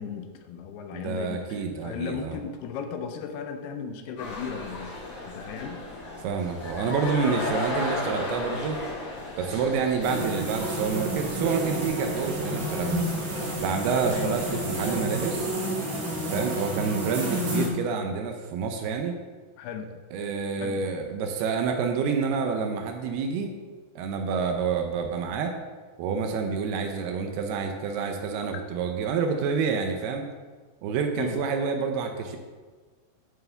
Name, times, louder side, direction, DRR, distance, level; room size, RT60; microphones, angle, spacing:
voice 1, 0.0-4.9 5.2-5.8 14.0-14.3 19.6-19.9 20.6-20.8 28.5-28.6 31.1-31.4, left 6 dB, 80° left, 7 dB, 2.6 m, -36 dB
voice 2, 0.9-2.4 6.2-8.8 9.4-13.0 13.6-15.5 16.3-19.2 20.1-23.5 24.0-25.6 26.0-30.3 30.8-32.4, right 5 dB, 80° right, 5 dB, 2.6 m, -28 dB
sound 1, 4.2-15.5, left 2 dB, 45° left, 3.9 m, -36 dB
sound 2, 10.0-17.7, right 1 dB, 50° right, 3.3 m, -30 dB
10.5 x 7.3 x 3.4 m, 1.4 s
omnidirectional pair, 4.7 m